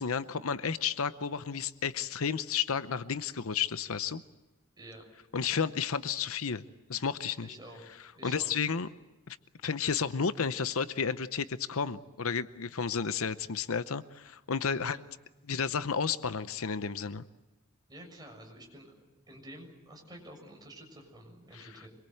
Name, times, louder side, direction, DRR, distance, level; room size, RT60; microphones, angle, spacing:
voice 1, 0.0-4.2 5.3-7.5 8.2-8.9 9.3-9.4 9.6-15.0 15.5-17.2 21.5-21.7, left 6 dB, 70° left, 13 dB, 0.8 m, -32 dB
voice 2, 4.8-5.1 7.4-7.8 8.1-8.5 14.7-15.0 17.9-18.9 19.3-21.9, right 1 dB, 20° right, 1 dB, 6.9 m, -49 dB
25.5 x 23.0 x 7.9 m, 1.1 s
head